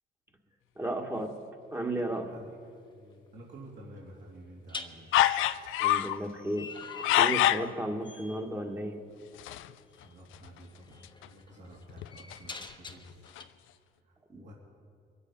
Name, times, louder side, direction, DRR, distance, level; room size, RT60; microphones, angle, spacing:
voice 1, 0.8-1.3 1.7-2.3 5.8-6.7 7.2-9.0 14.3-14.5, right 1 dB, 15° right, 2 dB, 1.6 m, -34 dB
sound 1, 2.1-2.3 4.7-7.8 8.0-8.5 9.9-10.1 10.6-13.4, left 3 dB, 25° left, 1.1 m, -46 dB
voice 2, 2.3-5.1 10.0-13.3 14.0-14.5, right 1 dB, 65° right, -4 dB, 2.9 m, -51 dB
sound 2, 5.1-6.2 6.8-7.7 9.4-9.7 10.0-10.1 10.3-10.5 11.0-11.3 11.9-12.9 13.3-13.4, left 13 dB, 85° left, 0.5 m, -26 dB
23.0 x 8.4 x 5.5 m, 2.3 s
cardioid pair, 90°, 20 cm